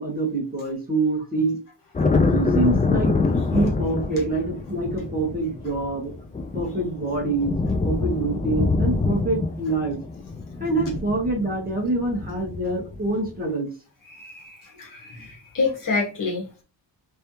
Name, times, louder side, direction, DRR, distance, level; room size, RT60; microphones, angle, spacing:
voice 1, 0.0-1.6 2.3-3.2 3.5-6.1 6.5-7.5 7.8-10.0 10.6-13.7, right 2 dB, 20° right, 1.7 m, -25 dB
sound 1, 1.9-13.3, left 3 dB, 20° left, 0.4 m, -25 dB
voice 2, 14.1-14.5 14.8-16.6, left 4 dB, 50° left, 1.5 m, -28 dB
3.5 x 3.2 x 2.8 m
wide cardioid pair, 130°, 42 cm